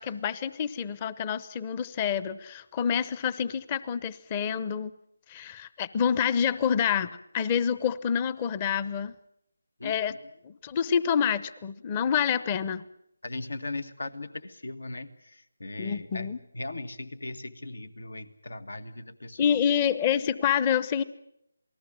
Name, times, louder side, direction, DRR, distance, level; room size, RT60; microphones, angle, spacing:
voice 1, 0.0-4.9 5.3-9.1 9.8-10.2 10.4-12.8 15.8-16.4 19.4-21.0, left 8 dB, 20° left, 18 dB, 0.8 m, -27 dB
voice 2, 13.2-19.6, left 2 dB, 80° left, 13 dB, 2.0 m, -38 dB
28.0 x 19.5 x 7.5 m, 0.78 s
figure-of-eight pair, 165°, 0 cm